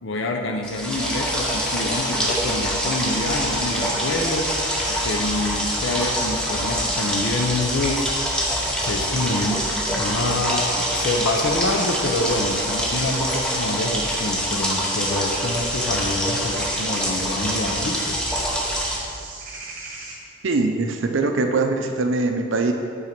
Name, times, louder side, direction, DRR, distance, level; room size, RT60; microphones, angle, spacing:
voice 1, 0.0-4.6 4.9-8.1 8.8-18.2, left 2 dB, 55° left, 3 dB, 0.5 m, -26 dB
sound 1, 0.6-19.0, equal, 5° left, 0.6 m, -25 dB
sound 2, 2.5-20.2, right 3 dB, 40° right, 1.1 m, -39 dB
sound 3, 4.0-9.6, equal, 85° left, 1.6 m, -41 dB
voice 2, 20.4-22.7, right 3 dB, 60° right, 5 dB, 0.5 m, -22 dB
5.9 x 4.0 x 5.8 m, 2.4 s
head